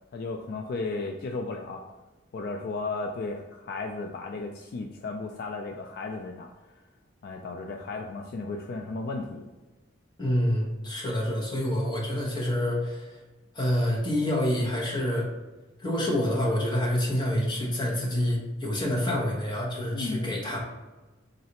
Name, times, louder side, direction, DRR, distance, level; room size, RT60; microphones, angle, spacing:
voice 1, 0.1-1.8 2.3-6.5 7.2-9.5 19.9-20.4, left 3 dB, 55° left, 3 dB, 0.3 m, -34 dB
voice 2, 10.2-13.2 13.5-15.3 15.8-20.6, left 1 dB, 25° left, -3 dB, 1.0 m, -27 dB
3.9 x 3.2 x 2.9 m, 1.2 s
head